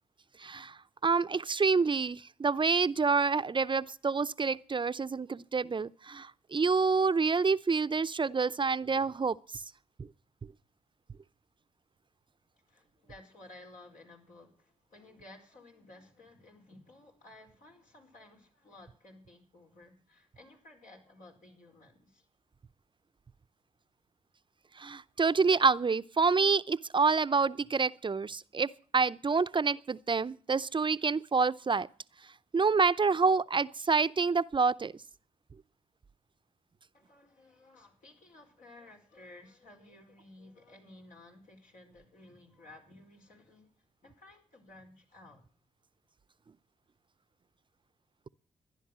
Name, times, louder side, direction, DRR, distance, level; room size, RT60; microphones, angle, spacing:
voice 1, 0.4-0.7 1.0-9.4 24.8-31.9 32.5-34.9, right 4 dB, 35° right, 0.6 m, -27 dB
voice 2, 12.7-22.3 36.9-45.5, left 2 dB, 70° left, 4.7 m, -55 dB
14.5 x 10.5 x 7.4 m
supercardioid pair, 45°, 14 cm